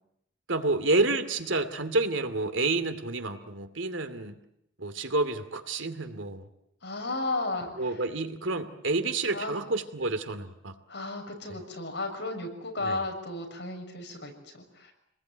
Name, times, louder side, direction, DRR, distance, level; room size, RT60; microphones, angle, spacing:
voice 1, 0.5-4.4 4.8-6.5 7.8-10.8 12.8-13.0, right 3 dB, 85° right, 9 dB, 2.5 m, -29 dB
voice 2, 6.8-8.0 9.3-9.5 10.9-14.9, left 2 dB, 65° left, 3 dB, 6.8 m, -34 dB
27.5 x 21.0 x 9.3 m, 0.76 s
head